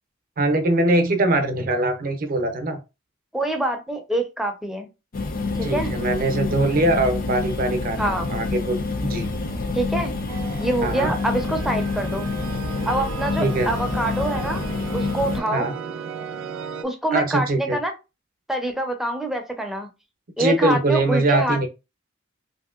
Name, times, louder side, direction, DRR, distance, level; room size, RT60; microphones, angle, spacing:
voice 1, 0.4-2.8 5.6-9.3 10.8-11.1 13.4-13.7 15.5-15.7 17.1-17.8 20.4-21.7, right 2 dB, 50° right, 6 dB, 0.6 m, -22 dB
voice 2, 3.3-4.9 5.5-5.9 8.0-8.3 9.7-10.1 10.6-12.3 12.9-14.6 14.9-15.7 16.8-17.9 18.5-19.9 20.4-21.7, right 1 dB, ahead, 3 dB, 0.5 m, -25 dB
sound 1, 5.1-15.4, left 3 dB, 45° left, 0.5 m, -27 dB
sound 2, 10.3-16.8, right 6 dB, 90° right, 0.4 m, -35 dB
3.0 x 2.7 x 2.4 m, 0.27 s
head